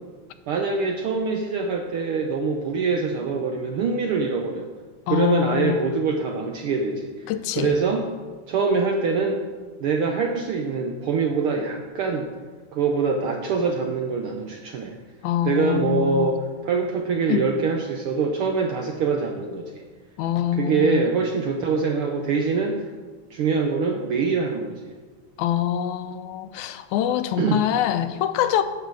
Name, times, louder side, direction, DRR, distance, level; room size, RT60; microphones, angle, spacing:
voice 1, 0.5-4.7 5.1-7.2 7.6-8.0 8.5-9.4 9.8-12.3 12.7-14.9 15.4-19.7 20.5-22.9 23.3-24.9 27.4-27.6, right 4 dB, 85° right, 3 dB, 1.2 m, -24 dB
voice 2, 5.1-5.9 7.3-7.8 15.2-16.3 17.3-17.5 20.2-21.1 25.4-28.6, left 11 dB, 85° left, 11 dB, 2.0 m, -25 dB
9.1 x 5.7 x 7.5 m, 1.4 s
omnidirectional pair, 3.3 m